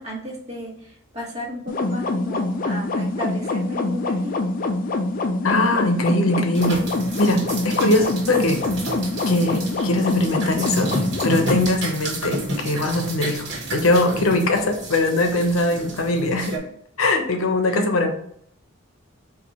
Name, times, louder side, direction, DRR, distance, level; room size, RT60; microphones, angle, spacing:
voice 1, 0.0-4.3 17.6-17.8, left 1 dB, 30° right, -3 dB, 1.3 m, -34 dB
sound 1, 1.7-11.7, left 2 dB, 40° left, 0.4 m, -25 dB
voice 2, 5.4-6.8 7.2-8.6 9.3-11.0 11.2-16.6 17.0-18.1, left 2 dB, 85° left, 5 dB, 0.8 m, -21 dB
sound 2, 6.5-16.6, right 1 dB, 55° right, 1.3 m, -31 dB
4.7 x 2.5 x 4.2 m, 0.67 s
head